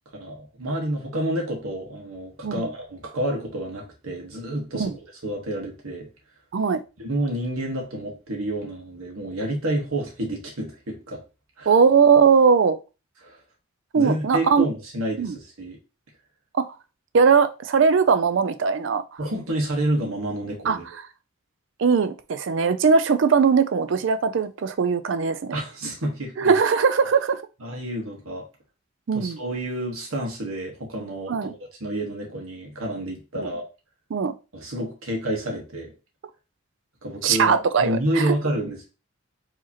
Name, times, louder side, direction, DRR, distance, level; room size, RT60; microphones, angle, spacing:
voice 1, 0.1-4.9 5.2-6.1 7.0-11.2 11.6-11.7 13.2-13.4 13.9-15.8 19.2-20.9 25.5-26.5 27.6-28.4 29.1-31.5 31.8-33.6 34.5-35.9 37.0-38.9, right 1 dB, 85° right, 1.3 m, -29 dB
voice 2, 11.7-12.8 13.9-14.7 15.2-15.4 16.5-16.6 17.1-19.2 20.7-20.8 21.8-25.6 26.4-27.4 29.1-29.4 31.3-31.5 33.4-33.5 34.1-34.3 37.2-38.3, right 5 dB, 60° right, 0.4 m, -20 dB
4.7 x 2.9 x 2.9 m
head